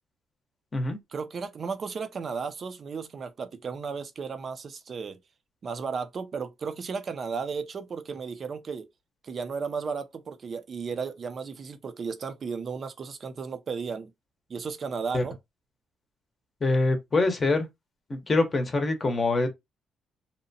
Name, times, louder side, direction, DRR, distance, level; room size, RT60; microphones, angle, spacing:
voice 1, 1.1-5.2 5.6-8.9 9.2-14.1 14.5-15.4, right 5 dB, 45° right, 0.5 m, -34 dB
voice 2, 16.6-17.7 18.1-19.5, left 2 dB, 35° left, 0.7 m, -24 dB
2.8 x 2.1 x 2.6 m
cardioid pair, 90°, 0 cm